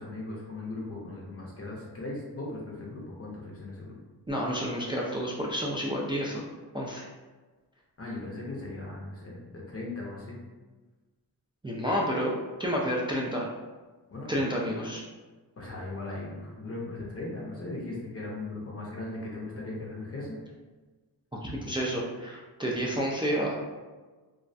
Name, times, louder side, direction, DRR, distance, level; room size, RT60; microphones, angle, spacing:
voice 1, 0.0-4.0 8.0-10.4 14.1-14.4 15.6-20.4, left 2 dB, 35° left, -3 dB, 0.6 m, -38 dB
voice 2, 4.3-6.4 6.7-7.1 11.6-13.5 14.3-15.0 21.4-23.6, equal, 15° right, -4 dB, 0.3 m, -30 dB
2.3 x 2.1 x 2.5 m, 1.3 s
cardioid pair, 60°, 40 cm